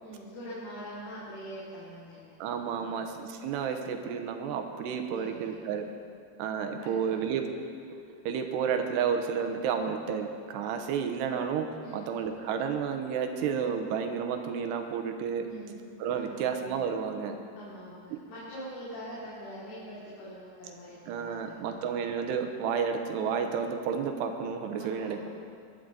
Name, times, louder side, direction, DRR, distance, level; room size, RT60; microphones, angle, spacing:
voice 1, 0.0-2.4 2.7-3.0 5.0-5.5 6.8-7.3 11.8-12.0 15.4-15.8 16.1-16.4 17.6-21.9 24.8-25.3, equal, 65° left, -9 dB, 4.5 m, -44 dB
voice 2, 2.4-5.9 6.4-7.5 8.2-11.7 11.9-15.5 16.0-17.4 18.1-18.2 21.1-25.3, right 7 dB, 85° right, 5 dB, 3.0 m, -31 dB
21.0 x 12.5 x 3.9 m, 2.3 s
omnidirectional pair, 4.8 m